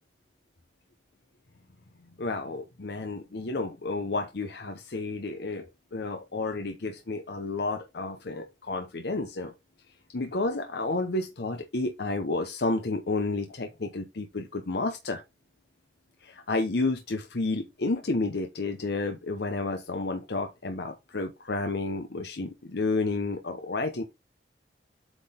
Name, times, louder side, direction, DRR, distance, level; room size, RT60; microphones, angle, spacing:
voice 1, 2.2-5.7 5.9-9.5 10.1-15.2 16.2-24.0, left 3 dB, 65° left, 0.8 m, -31 dB
8.1 x 3.8 x 3.7 m
head